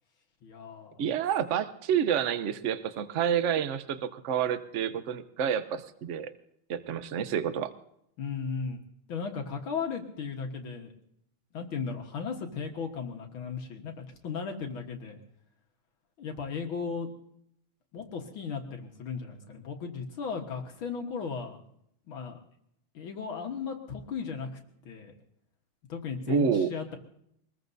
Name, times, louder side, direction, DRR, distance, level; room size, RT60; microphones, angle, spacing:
voice 1, 0.4-1.0 8.2-8.8 9.1-10.9 11.5-15.2 16.2-17.1 17.9-21.6 22.1-22.4 22.9-24.5 24.9-25.1 25.9-27.0, left 5 dB, 70° left, 2 dB, 2.2 m, -36 dB
voice 2, 1.0-6.3 6.7-7.7 26.3-26.7, right 8 dB, 60° right, 11 dB, 0.7 m, -29 dB
24.0 x 20.5 x 2.7 m, 0.74 s
omnidirectional pair, 2.3 m